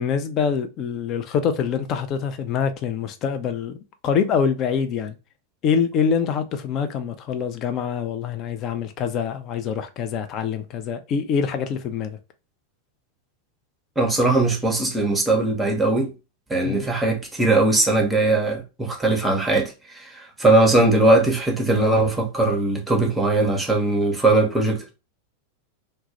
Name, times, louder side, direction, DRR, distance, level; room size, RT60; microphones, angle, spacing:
voice 1, 0.0-3.8 4.0-5.2 5.6-12.2 16.6-16.9, left 6 dB, 35° left, 0.4 m, -25 dB
voice 2, 14.0-16.1 16.5-24.9, right 2 dB, 10° right, 0.7 m, -20 dB
2.2 x 2.1 x 2.7 m
figure-of-eight pair, 90°, 0 cm